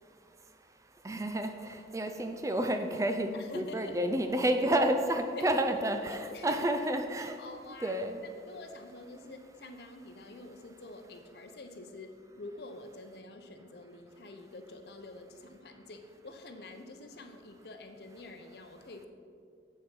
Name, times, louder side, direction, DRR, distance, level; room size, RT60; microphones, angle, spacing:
voice 1, 1.0-1.5 1.9-7.3 7.8-8.2, right 1 dB, 15° right, 6 dB, 0.4 m, -30 dB
voice 2, 3.3-4.1 4.4-5.6 6.1-6.6 7.1-19.1, left 2 dB, 65° left, 6 dB, 0.7 m, -48 dB
7.8 x 7.0 x 5.3 m, 2.3 s
head